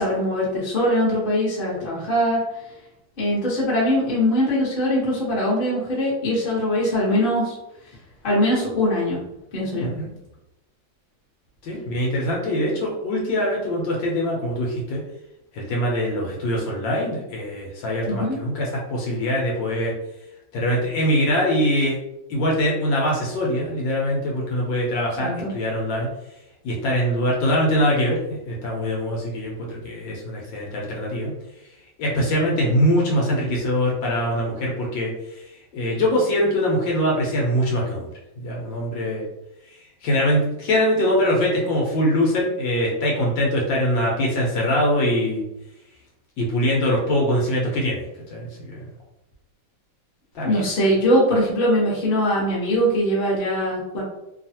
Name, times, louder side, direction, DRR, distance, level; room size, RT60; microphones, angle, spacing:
voice 1, 0.0-2.4 3.2-7.5 8.2-9.2 9.5-9.9 18.0-18.4 25.2-25.5 50.4-54.0, equal, 35° left, -6 dB, 0.9 m, -21 dB
voice 2, 11.6-15.0 15.5-19.9 20.5-22.0 22.3-26.1 26.6-31.3 32.0-35.1 35.7-38.1 38.4-39.3 40.0-45.5 46.4-48.0 48.3-48.9 50.3-50.6, equal, 75° left, -2 dB, 1.4 m, -23 dB
3.2 x 2.4 x 2.7 m, 0.91 s
omnidirectional pair, 2.2 m